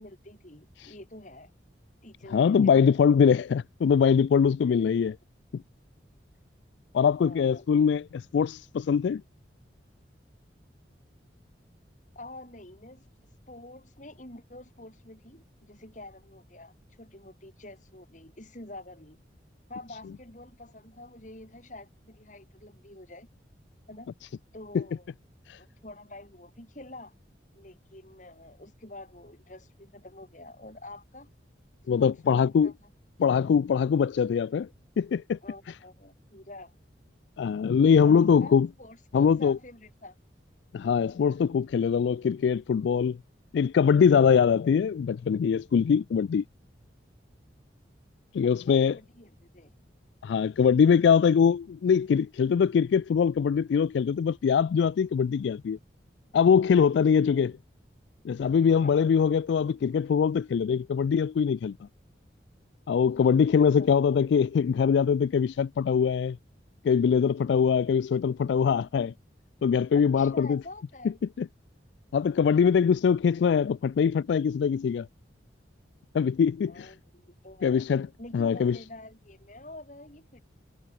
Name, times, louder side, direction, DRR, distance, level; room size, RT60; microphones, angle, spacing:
voice 1, 0.0-1.5 2.0-2.5 4.6-4.9 7.2-7.6 12.1-13.1 13.5-19.2 19.7-23.3 23.9-24.2 24.5-25.1 25.5-27.1 27.5-31.3 31.9-32.9 35.4-36.8 38.0-40.2 48.4-49.7 56.8-56.9 57.2-57.5 58.7-59.3 63.8-63.9 69.9-71.2 76.7-77.9 78.2-80.4, left 2 dB, 40° left, 4.5 m, -47 dB
voice 2, 2.3-5.1 6.9-9.2 24.7-24.8 25.5-25.6 31.9-32.7 33.2-34.7 35.0-35.4 37.4-38.7 39.1-39.6 40.7-43.2 43.5-46.4 48.3-49.0 50.2-55.8 56.3-57.5 58.2-61.8 62.9-66.4 66.8-69.1 69.6-70.6 71.4-71.5 72.1-75.1 76.1-76.9 77.6-78.1 78.3-78.8, left 6 dB, 70° left, 0.3 m, -23 dB
head